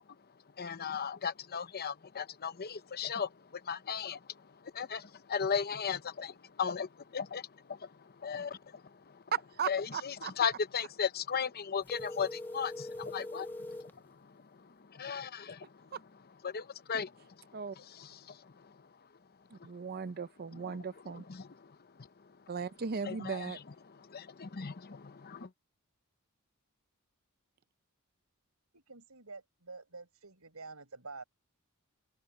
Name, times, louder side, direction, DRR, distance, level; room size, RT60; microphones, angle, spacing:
voice 1, 0.6-9.2 9.7-15.9 16.4-18.9 20.5-22.4 23.0-25.5, left 6 dB, 45° left, 0.8 m, -38 dB
voice 2, 9.3-10.3 15.9-16.0 17.5-17.8 19.5-21.2 22.5-23.6, right 6 dB, 45° right, 0.6 m, -37 dB
sound 1, 11.8-13.9, left 1 dB, 10° left, 0.5 m, -42 dB
voice 3, 28.7-31.2, right 3 dB, 80° right, 6.0 m, -48 dB
head